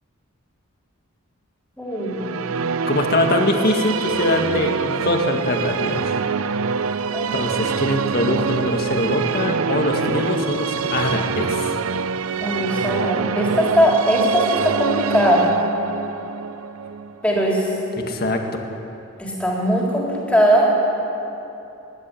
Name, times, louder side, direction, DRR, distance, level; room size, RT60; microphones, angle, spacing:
voice 1, 1.8-2.2 7.1-7.3 12.4-15.4 17.2-17.7 19.2-20.7, equal, 5° left, -4 dB, 4.0 m, -19 dB
sound 1, 2.0-18.0, right 5 dB, 80° right, 0.6 m, -25 dB
voice 2, 2.9-6.1 7.3-11.8 18.0-18.6, left 1 dB, 45° left, 3 dB, 2.0 m, -22 dB
22.5 x 11.5 x 10.0 m, 2.9 s
head